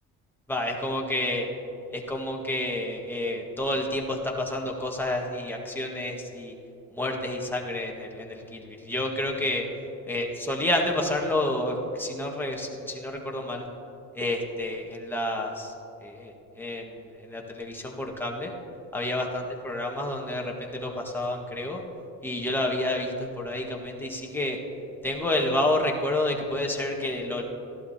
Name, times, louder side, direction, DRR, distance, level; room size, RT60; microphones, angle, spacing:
voice 1, 0.5-1.5 1.9-6.5 6.9-9.6 10.1-13.7 14.1-15.7 16.0-16.8 17.2-18.5 18.9-21.8 22.2-24.6 25.0-27.4, left 1 dB, 5° left, -1 dB, 1.6 m, -29 dB
15.5 x 11.5 x 2.9 m, 2.9 s
cardioid pair, 105°, 32 cm